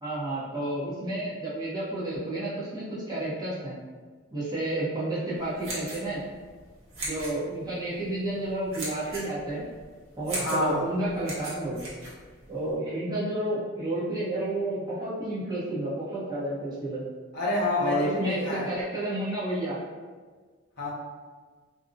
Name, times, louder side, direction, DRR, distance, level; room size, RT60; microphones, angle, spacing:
voice 1, 0.0-3.7 4.3-6.2 7.0-9.6 10.2-11.8 12.5-17.0 17.8-19.8, right 1 dB, 20° right, -9 dB, 0.7 m, -31 dB
sound 1, 5.4-12.7, right 1 dB, 70° right, 0.8 m, -39 dB
voice 2, 10.4-10.8 17.3-18.7 20.8-20.9, left 2 dB, 50° left, -6 dB, 0.5 m, -27 dB
2.5 x 2.0 x 2.5 m, 1.5 s
head